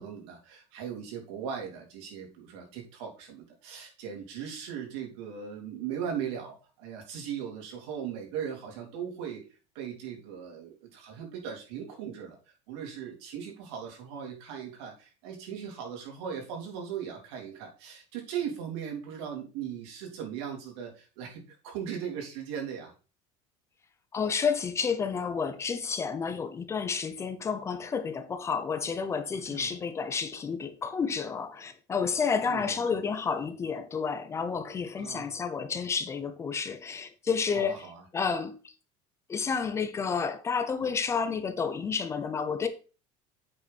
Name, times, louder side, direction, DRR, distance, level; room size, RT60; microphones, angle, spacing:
voice 1, 0.0-9.4 9.8-12.4 12.7-22.9 29.5-29.8 32.5-33.0 35.0-35.3 37.5-38.0, right 8 dB, 85° right, 3.5 m, -38 dB
voice 2, 24.1-38.6 39.3-42.7, left 6 dB, 20° left, 0.7 m, -30 dB
8.3 x 5.8 x 4.3 m
cardioid pair, 160°, 14 cm